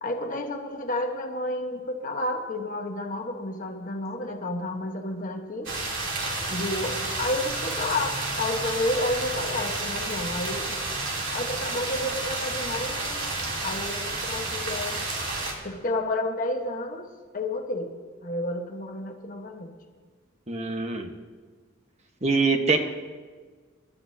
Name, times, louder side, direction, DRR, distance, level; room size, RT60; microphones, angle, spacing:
voice 1, 0.0-5.7 6.5-10.8 11.3-13.2 13.6-15.0 15.6-17.1 17.3-19.7, left 1 dB, 45° left, 3 dB, 1.3 m, -31 dB
sound 1, 5.6-15.5, right 2 dB, 70° right, 3.2 m, -31 dB
voice 2, 20.5-21.1 22.2-22.8, right 4 dB, 35° right, 4 dB, 1.2 m, -24 dB
26.0 x 12.5 x 2.8 m, 1.5 s
head